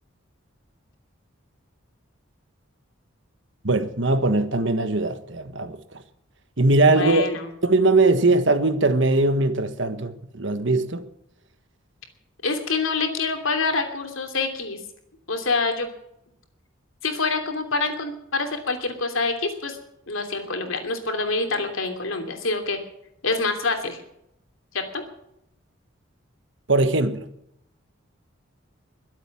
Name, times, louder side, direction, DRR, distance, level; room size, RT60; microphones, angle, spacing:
voice 1, 3.6-5.8 6.6-7.3 7.6-11.1 26.7-27.3, right 2 dB, 60° right, 1.5 m, -20 dB
voice 2, 6.8-7.5 12.4-14.8 15.3-15.9 17.0-19.8 20.1-22.8 23.2-24.0 24.7-25.0, left 3 dB, 75° left, 2.9 m, -26 dB
22.0 x 8.2 x 7.3 m
head